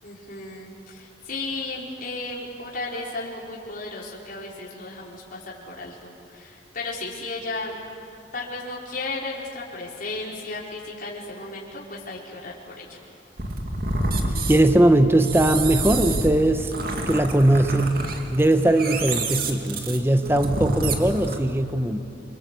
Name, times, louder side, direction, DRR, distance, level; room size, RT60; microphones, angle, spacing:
voice 1, 0.0-7.8 8.3-13.0, left 2 dB, 50° left, -5 dB, 4.8 m, -34 dB
sound 1, 13.4-21.4, right 2 dB, 55° right, 2.4 m, -28 dB
voice 2, 14.5-16.7 17.1-18.0 18.3-22.0, right 1 dB, 15° right, 8 dB, 1.1 m, -20 dB
28.5 x 23.5 x 8.5 m, 2.9 s
head